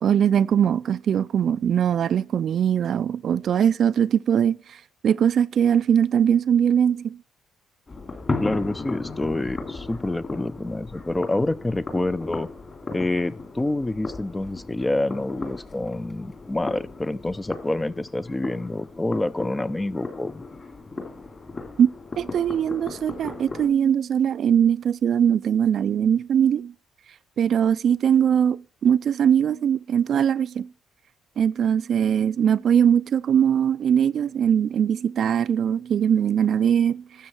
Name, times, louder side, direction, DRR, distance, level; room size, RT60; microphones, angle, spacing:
voice 1, 0.0-7.2 21.8-21.9 22.2-26.7 27.4-30.7 31.4-37.3, right 8 dB, 55° right, 0.4 m, -21 dB
sound 1, 7.9-23.7, left 3 dB, 30° left, 2.8 m, -36 dB
voice 2, 8.4-12.5 12.9-20.4, left 2 dB, 15° left, 0.6 m, -27 dB
12.5 x 7.5 x 4.4 m
cardioid pair, 105°, 0 cm